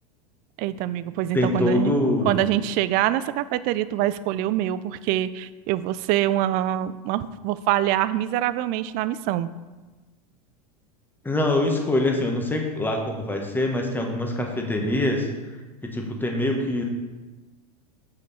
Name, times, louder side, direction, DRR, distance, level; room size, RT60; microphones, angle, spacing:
voice 1, 0.6-1.9 2.3-9.5, right 13 dB, 45° right, 15 dB, 0.4 m, -25 dB
voice 2, 1.3-2.4 11.2-15.3 15.8-16.8, left 1 dB, 10° left, 2 dB, 1.3 m, -24 dB
7.6 x 5.0 x 4.2 m, 1.2 s
hypercardioid pair, 90°, 20 cm